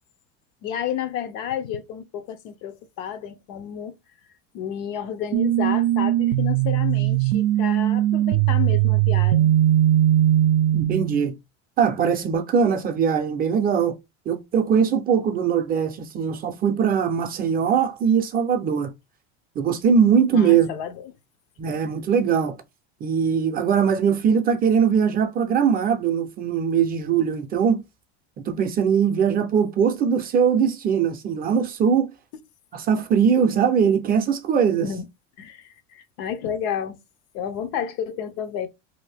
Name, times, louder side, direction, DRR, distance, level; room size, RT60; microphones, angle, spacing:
voice 1, 0.6-3.9 4.5-9.5 20.3-21.2 34.8-35.1 35.4-37.0 37.3-38.7, left 9 dB, 70° left, 0.6 m, -31 dB
sound 1, 5.3-11.3, right 13 dB, 85° right, 0.5 m, -20 dB
voice 2, 10.7-11.3 11.8-14.0 14.3-18.9 19.6-20.7 21.6-22.6 23.0-27.8 28.5-32.1 32.7-34.9, right 7 dB, 30° right, 0.5 m, -21 dB
2.7 x 2.5 x 3.3 m
supercardioid pair, 135°, 32 cm